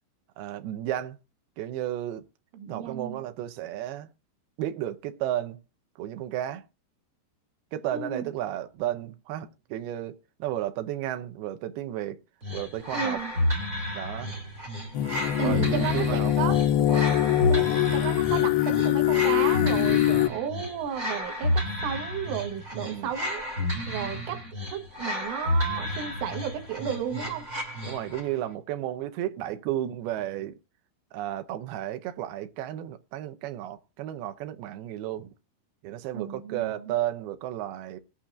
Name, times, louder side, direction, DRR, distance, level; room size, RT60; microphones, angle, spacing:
voice 1, 0.4-1.2 1.6-2.3 2.7-4.1 4.6-5.6 6.0-6.7 7.7-12.2 12.5-13.2 13.9-14.3 15.4-16.3 16.8-17.2 22.8-23.1 27.8-30.6 31.1-35.3 35.8-38.0, right 12 dB, 75° right, 2.5 m, -33 dB
voice 2, 2.5-3.2 7.9-8.3 12.9-13.3 15.4-16.6 17.5-17.7 17.9-23.4 23.9-24.4 24.7-27.5 36.1-36.9, right 8 dB, 90° right, 4.1 m, -33 dB
sound 1, 12.4-28.3, left 1 dB, 20° right, 2.7 m, -31 dB
sound 2, 14.9-20.3, left 13 dB, 80° left, 2.3 m, -23 dB
20.0 x 8.7 x 2.5 m
omnidirectional pair, 5.4 m